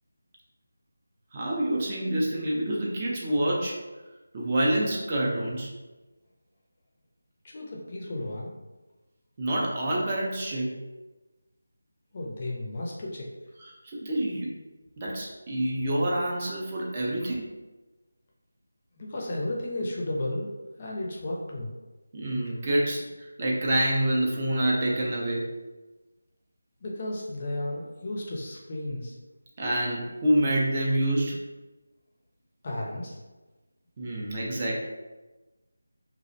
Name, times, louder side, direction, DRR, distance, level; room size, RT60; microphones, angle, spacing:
voice 1, 1.3-3.7 4.3-5.7 9.4-10.7 13.8-14.5 15.0-17.5 22.1-25.4 29.6-31.4 34.0-34.8, right 1 dB, 30° right, -4 dB, 0.4 m, -27 dB
voice 2, 7.4-8.5 12.1-13.3 19.0-21.7 26.8-29.2 32.6-33.2, left 1 dB, 35° left, -2 dB, 0.4 m, -33 dB
2.4 x 2.0 x 2.6 m, 1.2 s
figure-of-eight pair, 165°, 0 cm